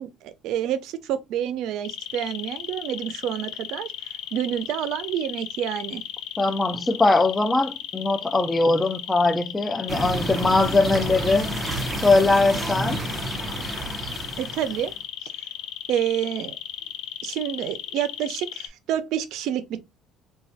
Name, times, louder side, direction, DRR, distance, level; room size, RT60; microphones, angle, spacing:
voice 1, 0.0-3.9 4.3-6.0 14.4-14.9 15.2-15.3 15.9-16.5 17.2-19.8, right 10 dB, 70° right, 0.4 m, -28 dB
sound 1, 1.8-18.7, left 11 dB, 80° left, 0.4 m, -35 dB
voice 2, 6.4-11.5 12.0-13.0, left 3 dB, 15° left, 0.3 m, -21 dB
sound 2, 9.9-14.9, right 1 dB, 10° right, 0.7 m, -30 dB
4.0 x 2.2 x 2.7 m
cardioid pair, 120°, 0 cm